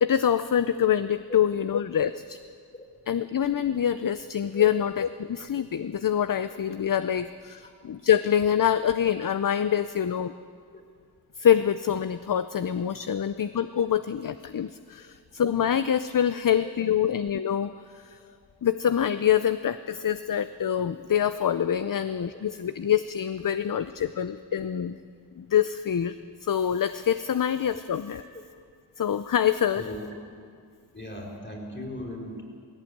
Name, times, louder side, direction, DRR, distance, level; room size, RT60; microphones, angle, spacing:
voice 1, 0.0-2.4 3.1-10.3 11.4-18.2 18.6-25.0 25.4-28.2 29.0-29.9, left 9 dB, 55° left, 12 dB, 0.6 m, -25 dB
voice 2, 13.1-13.4 16.6-17.0 21.9-22.3 29.8-30.1 30.9-32.4, left 1 dB, 25° left, -1 dB, 4.7 m, -39 dB
18.0 x 16.5 x 8.6 m, 2.2 s
wide cardioid pair, 80°, 41 cm